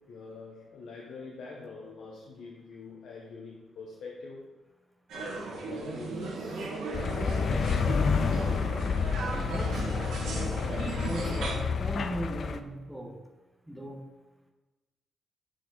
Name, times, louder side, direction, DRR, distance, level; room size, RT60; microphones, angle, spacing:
voice 1, 0.0-4.5 5.1-6.7 7.0-7.9, left 4 dB, 70° left, -2 dB, 0.9 m, -45 dB
sound 1, 5.1-11.6, right 3 dB, 80° right, 1.5 m, -36 dB
sound 2, 6.9-12.6, left 6 dB, 45° left, 0.3 m, -29 dB
voice 2, 9.3-10.1 11.1-13.2 13.7-14.0, right 1 dB, 5° right, 1 dB, 0.9 m, -37 dB
6.2 x 4.8 x 3.9 m, 1.1 s
cardioid pair, 150°, 0 cm